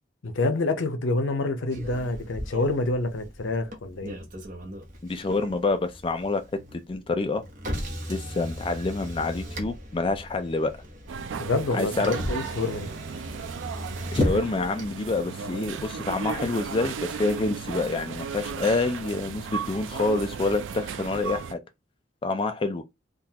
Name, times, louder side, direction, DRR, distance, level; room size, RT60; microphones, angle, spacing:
voice 1, 0.2-4.2 11.4-12.9, left 2 dB, 90° left, 0.6 m, -27 dB
Motor vehicle (road), 1.7-18.9, equal, 45° right, 0.9 m, -37 dB
voice 2, 5.0-6.4 6.7-7.4 8.1-10.7 11.7-12.1 14.1-21.6 22.2-22.9, left 3 dB, 30° left, 0.3 m, -27 dB
sound 1, 11.1-21.5, right 6 dB, 90° right, 0.4 m, -35 dB
3.7 x 2.3 x 2.8 m
head